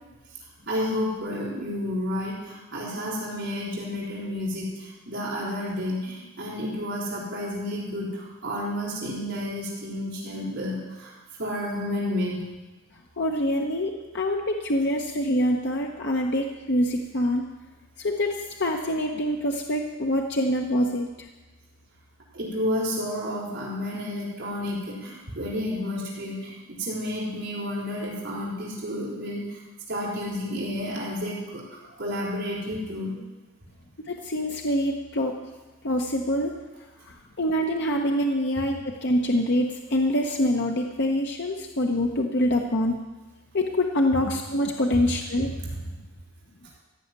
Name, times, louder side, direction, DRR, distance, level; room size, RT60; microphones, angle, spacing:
voice 1, 0.7-11.1 11.4-12.4 22.3-29.6 29.9-33.2, left 1 dB, 55° right, -6 dB, 4.1 m, -31 dB
voice 2, 13.2-17.4 18.0-21.1 34.1-35.4 35.8-36.5 37.1-42.9 43.5-45.5, left 1 dB, 50° left, 2 dB, 0.9 m, -25 dB
14.5 x 6.4 x 9.5 m, 1.2 s
head